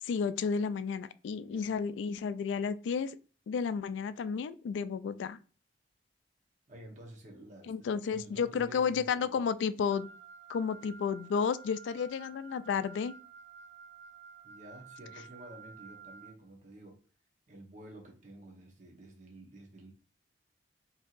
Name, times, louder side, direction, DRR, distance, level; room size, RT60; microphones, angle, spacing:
voice 1, 0.0-3.2 3.5-5.4 7.7-10.1 10.5-13.1, left 6 dB, 85° left, 0.3 m, -32 dB
voice 2, 1.3-1.7 6.7-9.3 10.8-10.9 14.4-17.0 17.5-19.9, right 1 dB, 40° right, 0.9 m, -51 dB
Wind instrument woodwind instrument, 9.9-16.4, right 6 dB, 75° right, 0.4 m, -52 dB
4.4 x 2.8 x 2.4 m
head